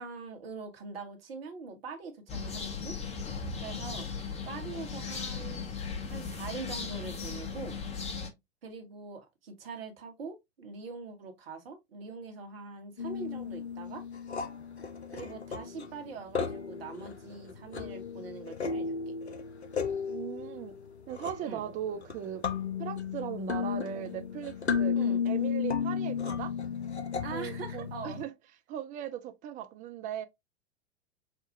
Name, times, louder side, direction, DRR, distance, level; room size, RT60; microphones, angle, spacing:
voice 1, 0.0-3.0 3.6-4.1 4.4-5.7 6.1-7.8 8.6-14.0 15.1-19.1 21.4-21.6 24.9-25.2 27.2-28.3, right 4 dB, 65° right, 1.3 m, -43 dB
sound 1, 2.3-8.3, left 5 dB, 20° left, 1.0 m, -37 dB
sound 2, 13.0-28.2, left 6 dB, 90° left, 0.6 m, -34 dB
voice 2, 20.1-20.8 21.1-22.4 22.8-25.0 25.2-26.5 27.3-28.3 28.7-30.3, right 10 dB, 25° right, 0.5 m, -38 dB
5.7 x 2.3 x 2.7 m
figure-of-eight pair, 90°, 32 cm